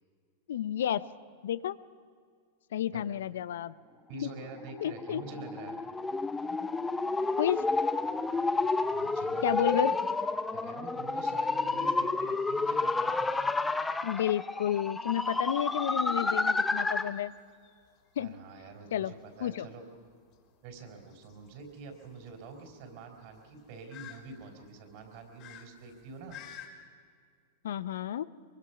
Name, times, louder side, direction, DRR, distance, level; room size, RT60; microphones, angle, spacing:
voice 1, 0.5-1.0 1.4-1.8 2.7-3.7 4.2-4.3 4.8-5.2 7.3-7.6 9.4-9.9 14.0-17.3 18.2-18.3 18.9-19.1 19.4-19.7 27.6-28.2, left 11 dB, 75° left, 16 dB, 0.7 m, -31 dB
voice 2, 4.1-5.8 8.9-9.7 10.5-13.3 18.2-19.8 20.6-26.4, right 3 dB, 55° right, 5 dB, 4.5 m, -46 dB
sound 1, 4.5-17.2, left 3 dB, 10° left, 0.9 m, -30 dB
sound 2, 16.9-26.7, left 10 dB, 50° left, 3.7 m, -53 dB
23.5 x 22.5 x 5.9 m, 2.1 s
hypercardioid pair, 105°, 0 cm